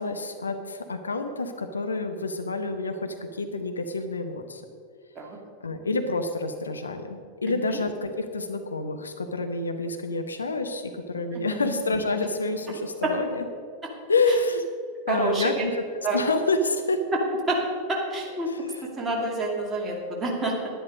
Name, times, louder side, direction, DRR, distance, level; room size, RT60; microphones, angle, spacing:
voice 1, 0.0-4.6 5.6-13.4 14.1-14.6 15.1-17.0 18.5-18.9, left 3 dB, 75° left, 7 dB, 0.8 m, -28 dB
voice 2, 7.4-7.8 11.3-11.7 15.1-15.7 16.0-16.2 17.5-17.6 17.9-18.5 19.0-20.5, right 2 dB, 20° right, -1 dB, 2.5 m, -28 dB
10.5 x 10.0 x 5.2 m, 2.2 s
figure-of-eight pair, 90°, 0 cm